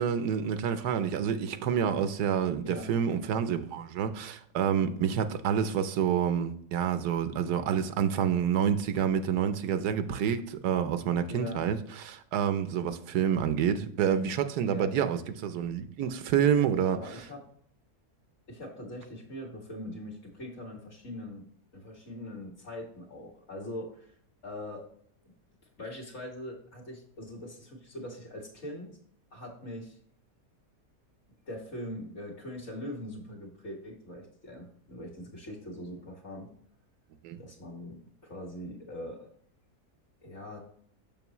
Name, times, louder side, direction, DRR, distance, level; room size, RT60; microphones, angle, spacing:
voice 1, 0.0-17.0 37.2-37.4, right 8 dB, 85° right, 1.2 m, -28 dB
voice 2, 2.6-2.9 11.3-11.6 14.6-14.9 16.9-17.4 18.5-21.4 21.7-24.1 24.4-24.8 25.3-25.4 25.8-28.9 29.3-30.0 31.5-36.5 37.4-39.3 40.2-40.6, left 1 dB, 45° left, 2.0 m, -42 dB
7.0 x 6.2 x 3.0 m
omnidirectional pair, 1.7 m